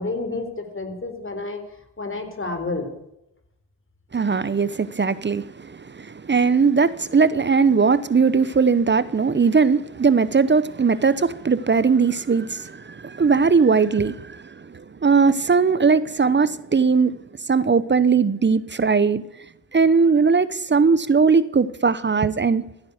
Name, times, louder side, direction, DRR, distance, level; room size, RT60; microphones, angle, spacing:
voice 1, 0.0-1.6 2.0-2.9, left 3 dB, 30° left, 3.7 m, -29 dB
voice 2, 4.1-17.2 17.4-19.2 19.7-22.6, right 5 dB, 25° right, 0.8 m, -19 dB
15.0 x 9.7 x 8.1 m
supercardioid pair, 65°, 43 cm